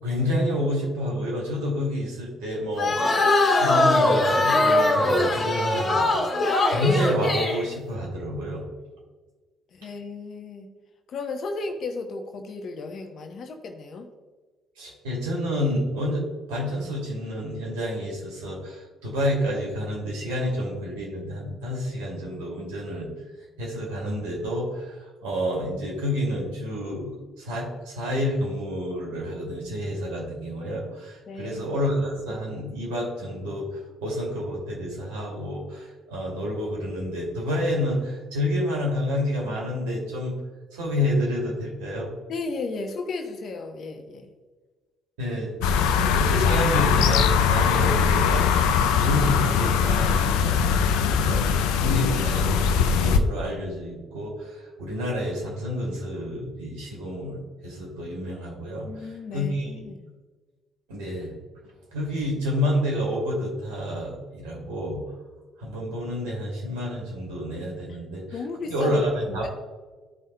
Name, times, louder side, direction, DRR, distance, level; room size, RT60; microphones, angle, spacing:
voice 1, 0.0-3.0 3.5-8.6 14.8-23.1 23.6-24.9 25.2-33.7 34.0-40.3 40.7-42.1 45.2-45.5 45.9-51.5 51.8-59.7 60.9-61.4 61.9-65.0 65.6-68.2 68.7-69.4, left 1 dB, 75° right, -2 dB, 2.5 m, -29 dB
sound 1, 2.8-7.6, left 2 dB, 35° left, 1.8 m, -21 dB
voice 2, 9.7-10.7 11.1-14.1 31.3-31.8 42.3-44.3 58.8-60.1 67.9-68.0 68.3-68.9 69.3-69.5, left 3 dB, 55° left, 5 dB, 0.9 m, -34 dB
sound 2, 45.6-53.2, left 6 dB, 70° left, 0.4 m, -21 dB
13.5 x 5.4 x 2.2 m, 1.4 s
hypercardioid pair, 50°, 0 cm